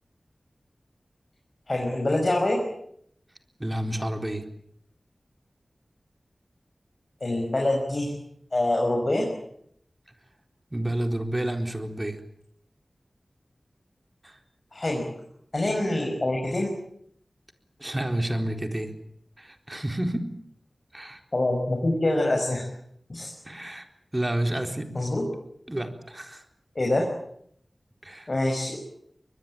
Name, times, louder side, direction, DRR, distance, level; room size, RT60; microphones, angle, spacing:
voice 1, 1.7-2.6 7.2-8.1 8.5-9.3 14.7-15.1 15.5-16.7 21.3-22.7 23.1-23.3 24.9-25.2 26.8-27.1 28.3-28.8, left 1 dB, 50° left, 1 dB, 5.8 m, -25 dB
voice 2, 3.6-4.4 10.7-12.2 14.2-14.4 17.8-18.9 19.4-20.2 20.9-21.2 23.5-23.9 24.1-24.9 25.7-26.4 28.0-28.3, right 1 dB, 25° right, 6 dB, 4.0 m, -29 dB
23.5 x 21.5 x 8.7 m, 0.69 s
cardioid pair, 45°, 0 cm